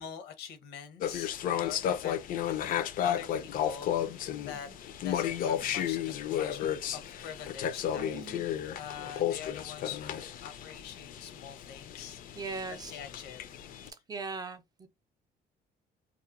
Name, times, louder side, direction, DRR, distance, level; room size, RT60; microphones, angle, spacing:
voice 1, 0.0-2.7 3.0-4.7 5.0-6.7 6.9-12.2 12.9-13.5, left 8 dB, 85° left, 0.8 m, -45 dB
sound 1, 1.0-13.9, left 10 dB, 55° left, 0.4 m, -33 dB
voice 2, 8.0-8.5 12.4-12.9 13.9-14.9, right 4 dB, 25° right, 0.4 m, -40 dB
2.9 x 2.1 x 2.4 m
cardioid pair, 110°, 17 cm